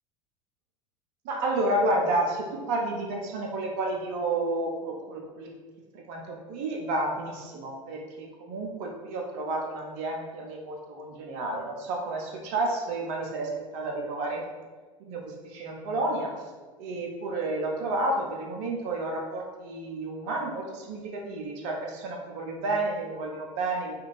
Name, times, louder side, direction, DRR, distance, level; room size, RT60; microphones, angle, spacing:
voice 1, 1.2-5.5 6.1-14.4 15.0-16.3 16.8-23.9, right 2 dB, 50° right, 0 dB, 0.7 m, -31 dB
2.6 x 2.5 x 3.1 m, 1.3 s
figure-of-eight pair, 80°, 17 cm